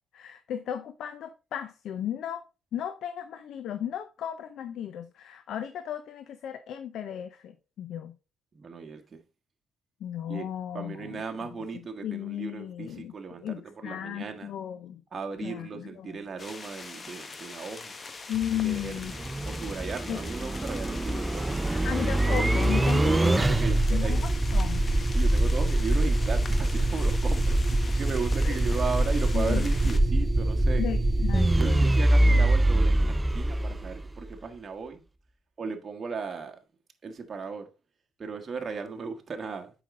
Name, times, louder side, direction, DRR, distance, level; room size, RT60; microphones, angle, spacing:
voice 1, 0.1-2.4 2.7-8.1 10.0-11.2 12.0-13.1 13.4-15.0 15.4-16.2 18.3-19.1 20.1-20.2 21.8-24.8 28.4-28.6 29.3-29.7 30.8-32.3, left 10 dB, 75° left, 0.6 m, -35 dB
voice 2, 8.5-9.2 10.3-10.5 10.7-14.5 15.1-17.9 18.6-19.2 19.4-21.9 23.2-24.2 25.1-30.9 31.6-35.0 35.6-36.6 37.0-37.7 38.2-39.7, right 5 dB, 40° right, 1.4 m, -36 dB
sound 1, 16.4-30.0, left 3 dB, 35° left, 1.0 m, -43 dB
sound 2, 18.3-34.3, right 1 dB, 15° right, 0.5 m, -24 dB
7.7 x 5.1 x 3.7 m
cardioid pair, 90°, 0 cm